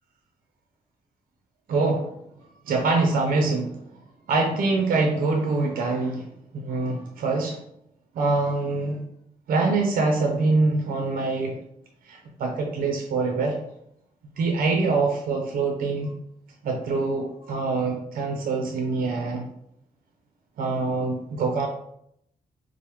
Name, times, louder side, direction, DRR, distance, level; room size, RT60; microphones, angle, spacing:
voice 1, 1.7-2.1 2.7-3.8 4.3-6.2 6.5-7.6 8.2-9.0 9.5-11.6 12.1-13.6 14.4-16.1 16.6-19.5 20.6-21.7, right 3 dB, 75° right, 2 dB, 0.5 m, -24 dB
4.6 x 2.1 x 2.9 m, 0.75 s
cardioid pair, 65°, 15 cm